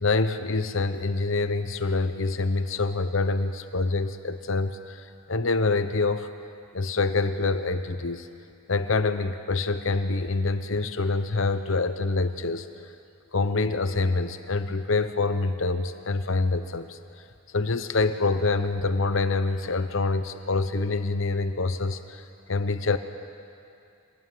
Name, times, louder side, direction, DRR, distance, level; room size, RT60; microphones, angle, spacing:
voice 1, 0.0-6.3 6.7-8.3 8.7-12.7 13.3-17.0 17.5-22.2 22.5-23.0, left 3 dB, 60° left, 10 dB, 0.9 m, -26 dB
25.0 x 19.0 x 9.3 m, 2.6 s
head